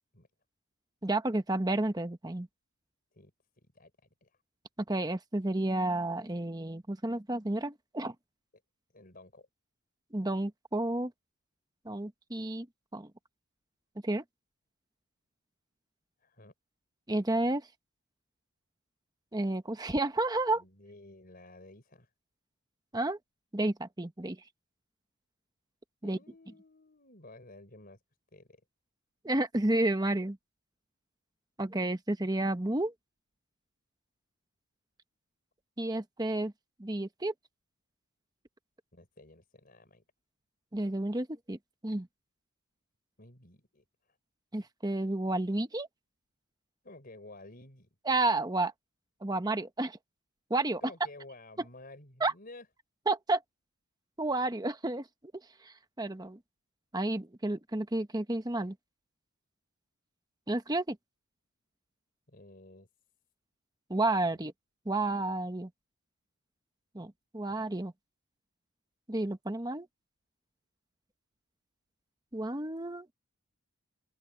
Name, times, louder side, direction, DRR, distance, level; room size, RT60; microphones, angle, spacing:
voice 1, 1.0-2.5 4.9-8.1 10.1-11.1 11.8-12.7 12.9-13.1 14.0-14.2 17.1-17.7 19.3-20.6 22.9-23.2 23.5-24.4 26.0-26.2 29.2-30.4 31.6-32.9 35.8-36.5 36.8-37.3 40.7-41.6 41.8-42.1 44.5-45.9 48.1-48.7 49.2-50.0 50.5-50.8 52.2-52.3 53.1-53.4 54.2-55.1 55.6-56.4 56.9-58.7 60.5-61.0 63.9-64.5 64.8-65.7 66.9-67.9 69.1-69.9 72.3-73.1, right 2 dB, 15° right, 1.0 m, -31 dB
voice 2, 3.1-3.9 4.2-4.4 8.9-9.5 16.2-16.5 20.5-22.1 26.0-28.0 28.3-28.6 38.9-40.0 43.2-44.2 46.8-47.9 50.8-52.7 62.3-62.9 67.5-67.7, left 2 dB, 40° left, 4.9 m, -53 dB
open air
head